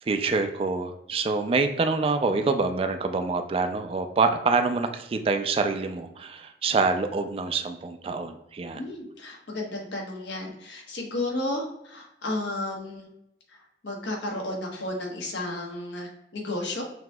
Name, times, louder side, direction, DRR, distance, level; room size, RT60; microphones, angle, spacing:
voice 1, 0.0-8.9, right 4 dB, 35° right, 7 dB, 0.3 m, -26 dB
voice 2, 8.7-13.1 13.5-16.8, left 1 dB, 85° left, 0 dB, 1.1 m, -33 dB
5.9 x 2.8 x 2.3 m, 0.81 s
head